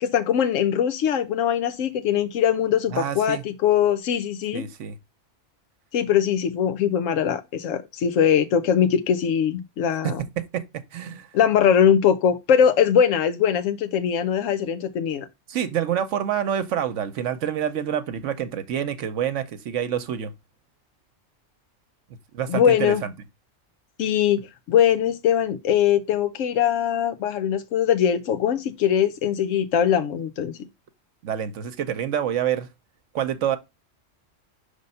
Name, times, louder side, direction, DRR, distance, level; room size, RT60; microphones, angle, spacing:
voice 1, 0.0-4.6 5.9-10.2 11.3-15.3 22.5-23.0 24.0-24.4 24.7-30.5, left 8 dB, 85° left, 1.0 m, -21 dB
voice 2, 2.9-3.4 4.5-5.0 10.4-10.6 10.9-11.3 15.5-20.3 22.3-23.1 31.2-32.7 33.1-33.6, right 9 dB, 75° right, 1.0 m, -27 dB
5.3 x 3.4 x 5.3 m
omnidirectional pair, 1.3 m